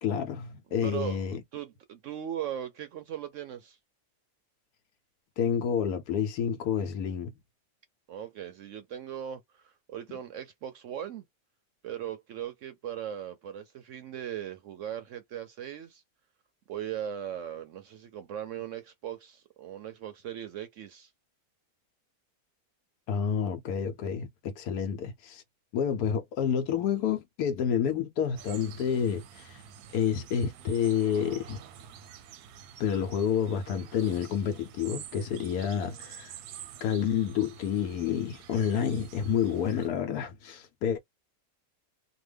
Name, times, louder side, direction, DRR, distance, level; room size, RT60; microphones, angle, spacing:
voice 1, 0.0-1.4 5.4-7.3 23.1-25.4 25.7-29.6 29.9-31.6 32.8-36.3 36.8-41.0, left 8 dB, 85° left, 1.1 m, -29 dB
voice 2, 0.8-1.3 1.5-3.8 8.1-11.2 11.8-16.0 16.7-21.1, right 10 dB, 65° right, 0.8 m, -38 dB
sound 1, 28.4-39.9, right 9 dB, 90° right, 1.1 m, -48 dB
2.8 x 2.2 x 3.3 m
omnidirectional pair, 1.6 m